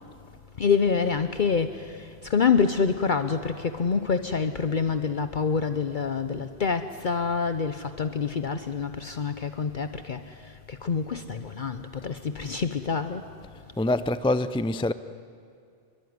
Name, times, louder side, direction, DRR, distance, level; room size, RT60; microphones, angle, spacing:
voice 1, 0.6-13.3, left 5 dB, 55° left, 0.9 m, -27 dB
voice 2, 13.8-14.9, left 2 dB, 10° left, 0.4 m, -25 dB
27.0 x 22.5 x 9.6 m
omnidirectional pair, 1.1 m